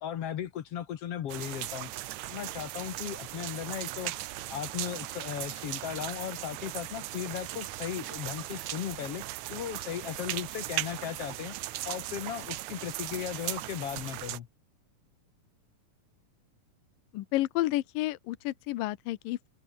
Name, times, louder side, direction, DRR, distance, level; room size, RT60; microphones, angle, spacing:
voice 1, 0.0-1.9 2.3-4.1 4.5-9.2 9.5-11.5 11.8-14.5, left 10 dB, 60° left, 1.7 m, -36 dB
sound 1, 1.3-14.4, right 15 dB, 70° right, 1.9 m, -38 dB
voice 2, 17.1-19.5, left 16 dB, 80° left, 2.6 m, -31 dB
omnidirectional pair, 4.1 m